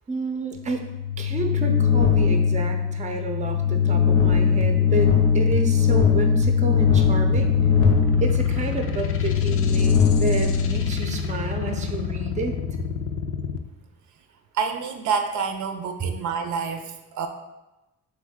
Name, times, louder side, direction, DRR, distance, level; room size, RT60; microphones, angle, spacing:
voice 1, 0.1-0.8 1.2-7.5 8.2-12.5, right 3 dB, 25° right, 4 dB, 0.5 m, -30 dB
sound 1, 0.7-11.3, left 6 dB, 80° left, 0.9 m, -20 dB
sound 2, 6.7-13.6, left 7 dB, 50° left, 0.4 m, -29 dB
voice 2, 14.5-17.3, right 6 dB, 75° right, 5 dB, 0.5 m, -28 dB
3.6 x 3.2 x 3.5 m, 1.0 s
cardioid pair, 90°, 30 cm